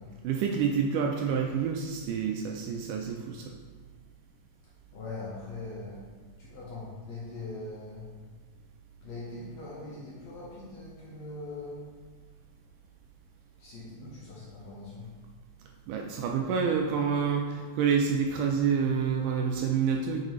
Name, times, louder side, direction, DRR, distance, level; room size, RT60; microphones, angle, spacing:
voice 1, 0.2-3.5 15.9-20.2, right 6 dB, 80° right, 2 dB, 1.9 m, -28 dB
voice 2, 4.9-6.0 6.4-8.1 9.0-11.8 13.6-15.1, left 2 dB, 65° left, -6 dB, 1.9 m, -41 dB
7.3 x 5.3 x 3.1 m, 1.5 s
omnidirectional pair, 4.0 m